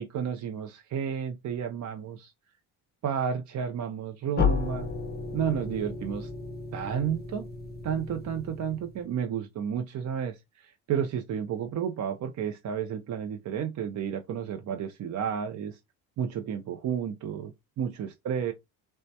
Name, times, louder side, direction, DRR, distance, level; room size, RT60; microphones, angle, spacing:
voice 1, 0.0-2.3 3.0-4.9 5.3-6.3 6.7-7.5 7.8-15.8 16.2-18.5, right 8 dB, 45° right, 0.5 m, -32 dB
sound 1, 4.4-9.2, left 5 dB, 25° left, 0.6 m, -33 dB
3.3 x 2.1 x 2.7 m
supercardioid pair, 75°, 43 cm